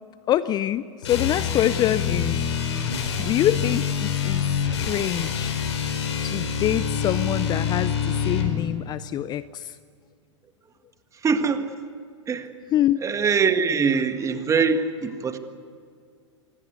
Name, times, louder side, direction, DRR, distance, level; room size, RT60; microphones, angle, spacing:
voice 1, 0.3-2.5 3.2-5.6 6.2-9.8 12.7-13.0, left 12 dB, 25° left, 16 dB, 0.6 m, -25 dB
sound 1, 1.0-8.6, left 7 dB, 65° left, 4.5 m, -26 dB
voice 2, 11.2-11.7 12.3-12.5 13.0-15.4, right 5 dB, 20° right, 8 dB, 1.8 m, -23 dB
26.0 x 21.0 x 8.2 m, 2.2 s
figure-of-eight pair, 100°, 16 cm